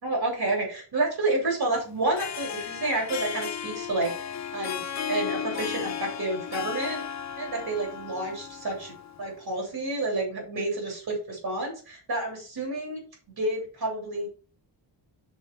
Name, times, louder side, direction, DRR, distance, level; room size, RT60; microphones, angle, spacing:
voice 1, 0.0-8.9 9.2-13.0 13.3-14.3, right 2 dB, 55° right, 0 dB, 3.1 m, -30 dB
Harp, 2.0-9.3, left 8 dB, 40° left, 0.5 m, -35 dB
5.4 x 4.2 x 5.1 m, 0.38 s
wide cardioid pair, 155°, 45 cm